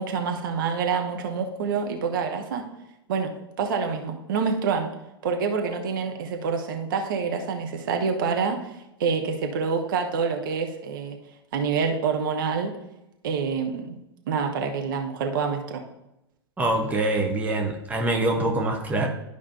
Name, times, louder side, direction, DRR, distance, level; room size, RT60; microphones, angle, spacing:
voice 1, 0.0-2.6 3.1-4.9 5.2-8.7 9.0-11.2 11.5-12.7 13.2-14.0 14.3-15.8, right 5 dB, 50° right, 4 dB, 1.0 m, -27 dB
voice 2, 16.6-19.1, right 2 dB, 10° right, 2 dB, 1.0 m, -24 dB
12.0 x 5.0 x 2.7 m, 0.91 s
figure-of-eight pair, 100°, 14 cm